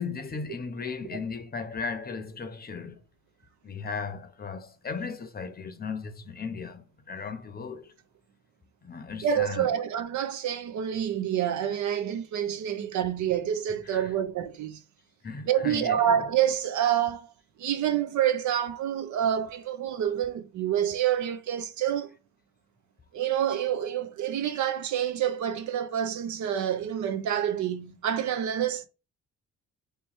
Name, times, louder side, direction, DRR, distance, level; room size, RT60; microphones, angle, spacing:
voice 1, 0.0-3.0 3.6-7.9 8.8-9.7 13.8-14.1 15.2-16.2, left 5 dB, 30° left, 0.7 m, -36 dB
voice 2, 9.2-14.8 15.5-17.3 17.6-22.2 23.1-28.9, right 10 dB, 70° right, 0.7 m, -27 dB
3.3 x 3.0 x 4.2 m
cardioid pair, 90°, 30 cm